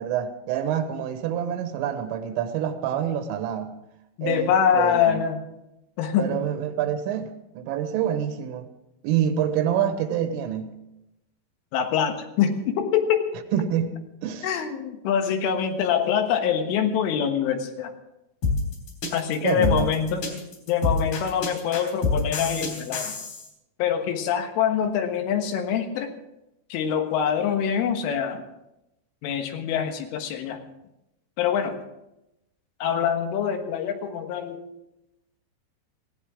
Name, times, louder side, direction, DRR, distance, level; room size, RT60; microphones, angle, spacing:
voice 1, 0.0-3.8 4.2-4.5 4.7-5.2 6.2-8.7 9.0-10.7 13.5-14.0 14.2-14.5 19.4-19.9, right 9 dB, 85° right, 7 dB, 3.9 m, -26 dB
voice 2, 4.2-5.4 6.0-6.4 11.7-13.3 14.4-17.9 19.1-20.4 20.7-23.2 23.8-26.1 26.7-28.5 29.2-30.6 31.4-31.8 32.8-34.6, left 8 dB, 80° left, 5 dB, 3.9 m, -24 dB
sound 1, 18.4-23.5, left 3 dB, 55° left, 5.3 m, -27 dB
19.0 x 16.5 x 3.7 m, 0.88 s
omnidirectional pair, 5.7 m